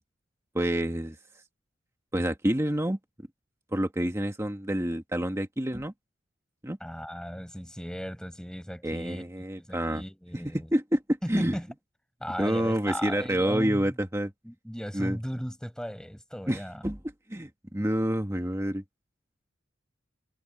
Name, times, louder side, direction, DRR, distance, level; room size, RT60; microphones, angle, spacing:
voice 1, 0.5-1.2 2.1-3.0 3.7-5.9 6.6-6.8 8.8-10.0 10.3-11.0 11.3-11.6 12.4-14.3 14.9-15.2 16.5-17.0 17.3-18.8, right 1 dB, 15° right, 1.5 m, -28 dB
voice 2, 6.8-9.2 9.6-10.7 11.2-11.7 12.2-14.0 14.4-16.8, equal, 5° left, 6.9 m, -36 dB
head